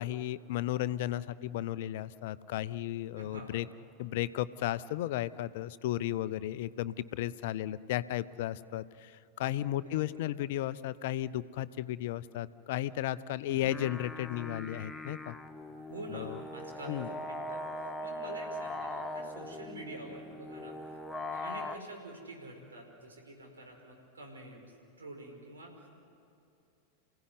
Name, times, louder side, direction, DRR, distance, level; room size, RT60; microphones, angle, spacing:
voice 1, 0.0-3.7 4.0-15.4 16.1-16.4 16.9-17.1, left 13 dB, 50° left, 16 dB, 0.7 m, -34 dB
voice 2, 3.1-3.6 9.7-10.3 15.9-17.0 17.3-21.0 21.3-24.7 25.0-25.9, right 2 dB, 70° right, 2 dB, 5.2 m, -47 dB
sound 1, 13.5-21.8, left 1 dB, 5° left, 1.1 m, -41 dB
28.0 x 17.0 x 9.7 m, 2.6 s
figure-of-eight pair, 90°, 0 cm